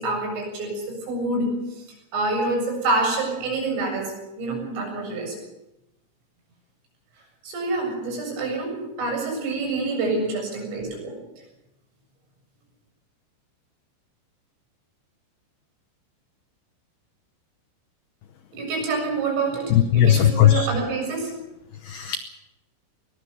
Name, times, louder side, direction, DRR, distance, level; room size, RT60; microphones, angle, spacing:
voice 1, 0.0-1.8 2.1-5.4 7.4-11.2 18.5-21.3, right 3 dB, 70° right, 1 dB, 10.0 m, -27 dB
voice 2, 19.7-20.7 21.9-22.2, left 11 dB, 90° left, 9 dB, 2.2 m, -17 dB
21.5 x 21.0 x 7.0 m, 0.93 s
omnidirectional pair, 5.8 m